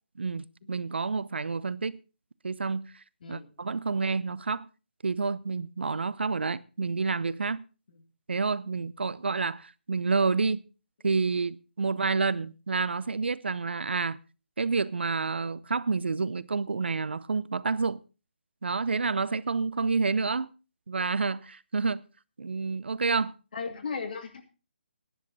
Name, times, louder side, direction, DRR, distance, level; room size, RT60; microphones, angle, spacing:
voice 1, 0.2-2.0 2.4-3.0 3.3-4.7 5.0-7.6 8.3-10.6 11.0-14.2 14.6-18.0 18.6-20.5 20.9-22.0 22.4-23.3, right 4 dB, 75° right, 0.7 m, -29 dB
voice 2, 23.5-24.4, left 5 dB, 55° left, 2.4 m, -36 dB
15.0 x 10.5 x 4.0 m
figure-of-eight pair, 155°, 6 cm